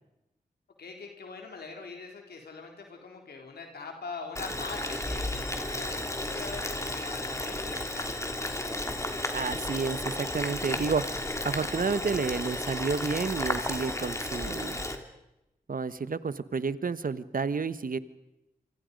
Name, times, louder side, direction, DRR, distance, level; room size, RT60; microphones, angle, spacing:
voice 1, 0.8-8.1, left 4 dB, 85° left, 2 dB, 3.6 m, -43 dB
Boiling, 4.3-15.0, left 1 dB, 20° left, 3.2 m, -33 dB
voice 2, 9.3-11.0 11.4-14.8 15.7-18.0, right 5 dB, 60° right, 14 dB, 1.2 m, -30 dB
27.5 x 25.0 x 5.3 m, 0.92 s
cardioid pair, 40°, 16 cm